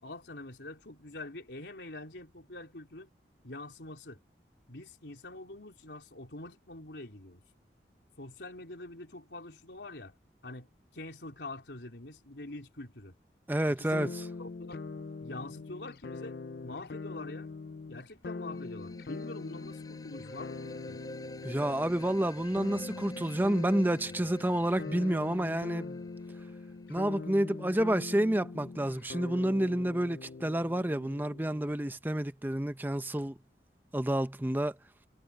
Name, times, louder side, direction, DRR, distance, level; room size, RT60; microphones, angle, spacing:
voice 1, 0.0-3.1 3.4-4.2 4.7-7.4 8.2-10.1 10.4-10.7 10.9-13.1 13.7-14.1 14.4-14.9 15.2-16.4 16.6-17.5 17.9-21.0, left 2 dB, 85° left, 3.9 m, -45 dB
voice 2, 13.5-14.3 21.4-26.0 26.9-33.4 33.9-34.7, right 1 dB, 10° right, 0.7 m, -29 dB
sound 1, 13.9-31.7, left 3 dB, 60° left, 0.5 m, -42 dB
sound 2, 18.4-27.2, left 1 dB, 20° left, 5.8 m, -48 dB
head